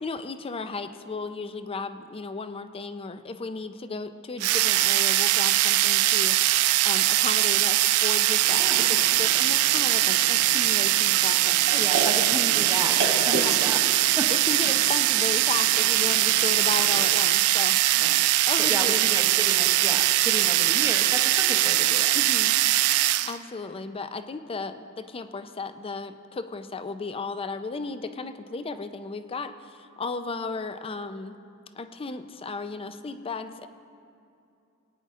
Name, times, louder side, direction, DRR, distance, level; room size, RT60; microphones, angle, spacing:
voice 1, 0.0-6.4 6.8-8.6 8.9-11.8 13.3-13.6 14.3-18.1 18.5-19.0 22.1-22.5 23.2-31.4 31.8-33.7, left 3 dB, 25° left, 10 dB, 0.4 m, -35 dB
sound 1, 4.4-23.4, right 15 dB, 75° right, 0.3 m, -22 dB
sound 2, 8.4-17.2, right 3 dB, 55° right, 1.2 m, -35 dB
voice 2, 11.5-13.8 14.2-14.3 17.9-18.3 18.6-22.1, right 1 dB, 15° right, 3 dB, 0.8 m, -33 dB
19.0 x 9.6 x 3.6 m, 2.5 s
head